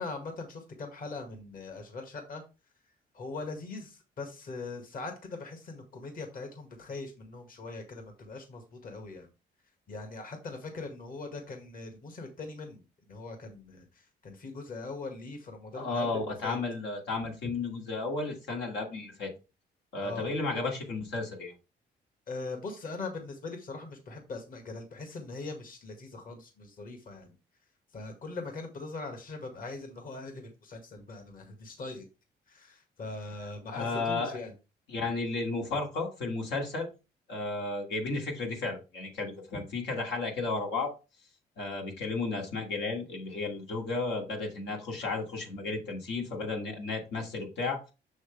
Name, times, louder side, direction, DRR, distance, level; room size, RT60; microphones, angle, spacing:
voice 1, 0.0-2.4 3.1-9.3 9.9-16.6 20.0-20.3 22.3-27.3 27.9-32.0 32.5-34.5, left 3 dB, 50° left, 5 dB, 1.9 m, -41 dB
voice 2, 15.7-19.3 19.9-21.5 33.7-34.4 34.9-36.9 37.3-40.9 41.6-47.8, left 3 dB, 85° left, 1 dB, 2.5 m, -33 dB
6.8 x 6.3 x 3.4 m, 0.29 s
cardioid pair, 105°, 18 cm